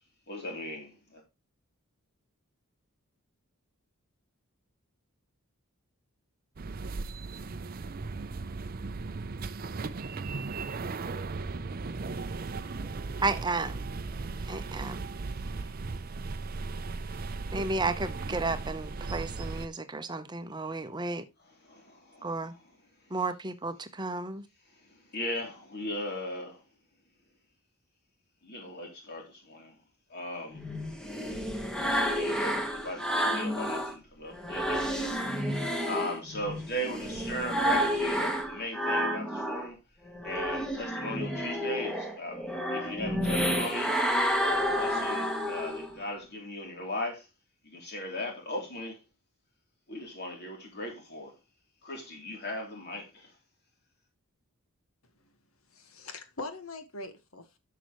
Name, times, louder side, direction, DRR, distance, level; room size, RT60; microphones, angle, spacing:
voice 1, 0.3-1.2 16.9-17.3 21.4-22.6 25.1-26.6 28.4-29.7 30.1-30.6 31.8-35.2 35.8-39.8 40.2-42.4 42.7-44.0 44.4-47.3 47.6-49.0 49.9-51.3 51.8-53.3, left 1 dB, 50° left, 3.2 m, -38 dB
sound 1, 6.6-19.7, right 3 dB, 40° right, 0.5 m, -37 dB
voice 2, 13.2-13.8 14.5-15.0 17.5-21.2 22.2-22.5 23.1-24.4, right 3 dB, 20° right, 0.8 m, -33 dB
sound 2, 30.5-33.9 34.3-39.7 40.1-45.9, equal, 5° left, 1.3 m, -30 dB
voice 3, 55.7-57.6, left 2 dB, 70° left, 1.5 m, -42 dB
11.0 x 6.7 x 3.1 m
head